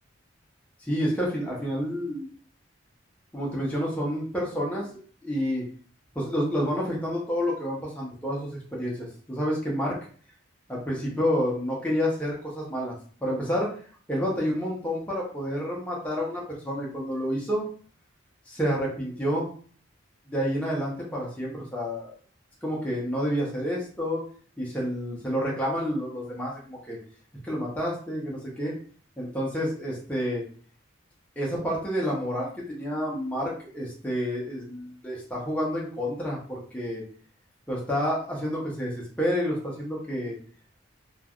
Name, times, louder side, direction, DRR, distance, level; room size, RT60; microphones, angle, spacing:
voice 1, 0.8-2.3 3.3-4.9 5.2-5.7 6.1-10.0 10.7-12.9 13.2-13.8 14.1-17.6 18.5-19.5 20.3-22.1 22.6-24.2 24.6-27.0 27.4-28.7 29.2-30.4 31.4-37.0 37.7-40.4, equal, 5° left, -4 dB, 0.6 m, -29 dB
3.1 x 2.3 x 2.3 m, 0.44 s
head